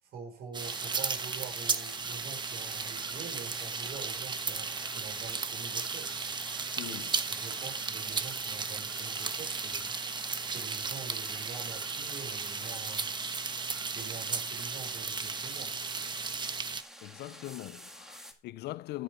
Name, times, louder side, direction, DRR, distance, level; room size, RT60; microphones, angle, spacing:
voice 1, 0.0-6.1 6.8-13.1 13.9-15.8, right 6 dB, 65° right, 6.2 m, -46 dB
sound 1, 0.5-16.8, right 5 dB, 25° right, 1.2 m, -35 dB
sound 2, 0.6-18.3, equal, 5° right, 2.2 m, -49 dB
voice 2, 6.8-7.1 17.0-19.0, left 18 dB, 75° left, 0.6 m, -41 dB
12.0 x 9.3 x 4.9 m
cardioid pair, 110°, 17 cm